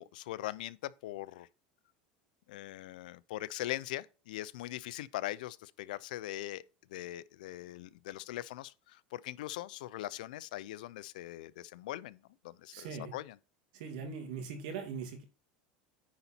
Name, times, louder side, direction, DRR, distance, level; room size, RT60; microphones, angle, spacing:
voice 1, 0.0-1.5 2.5-6.6 6.9-13.3, left 15 dB, 85° left, 0.4 m, -41 dB
voice 2, 12.7-13.1 13.7-15.2, right 6 dB, 75° right, 2.4 m, -41 dB
9.7 x 4.1 x 4.3 m
supercardioid pair, 135°, 4 cm